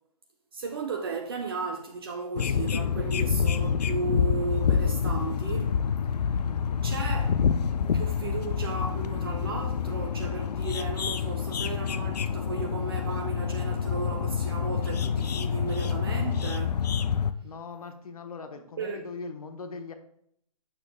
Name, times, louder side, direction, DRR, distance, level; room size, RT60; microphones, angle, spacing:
voice 1, 0.5-5.8 6.8-7.4 7.9-16.8 18.8-19.1, right 4 dB, 35° right, 0.6 m, -35 dB
sound 1, 2.3-17.3, left 7 dB, 85° left, 0.6 m, -27 dB
voice 2, 17.4-19.9, left 4 dB, 65° left, 1.1 m, -40 dB
8.6 x 6.7 x 2.2 m
hypercardioid pair, 165°, 20 cm